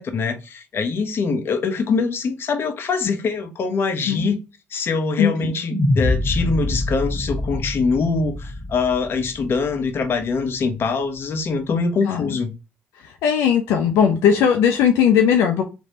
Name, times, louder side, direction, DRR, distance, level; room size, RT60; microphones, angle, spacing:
voice 1, 0.0-4.4 4.7-12.5, left 4 dB, 55° left, 0.9 m, -23 dB
voice 2, 5.2-5.5 12.1-12.3 13.0-15.6, left 8 dB, 85° left, 0.5 m, -18 dB
sound 1, 5.7-10.1, left 1 dB, 25° left, 1.6 m, -25 dB
3.2 x 2.6 x 4.0 m
supercardioid pair, 60°, 5 cm